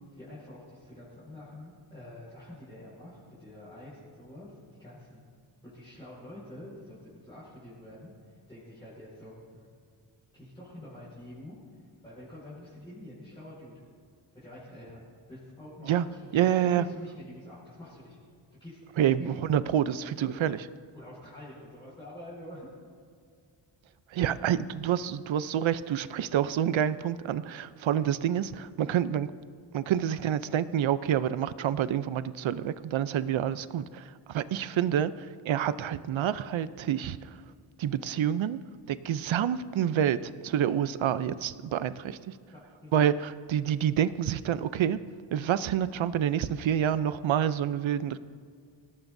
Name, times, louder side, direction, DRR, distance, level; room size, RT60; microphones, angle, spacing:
voice 1, 0.1-5.2 5.6-9.7 10.3-11.6 12.0-13.8 14.3-15.0 15.3-18.2 18.5-19.4 20.2-20.3 20.9-22.7 42.5-42.9, left 1 dB, 10° left, -10 dB, 5.3 m, -47 dB
voice 2, 16.3-16.8 19.0-20.6 24.1-29.3 29.7-37.2 37.8-38.6 38.9-42.3 42.9-45.0 45.3-48.2, right 10 dB, 80° right, 14 dB, 0.7 m, -28 dB
24.5 x 18.5 x 2.7 m, 2.1 s
wide cardioid pair, 170°, 46 cm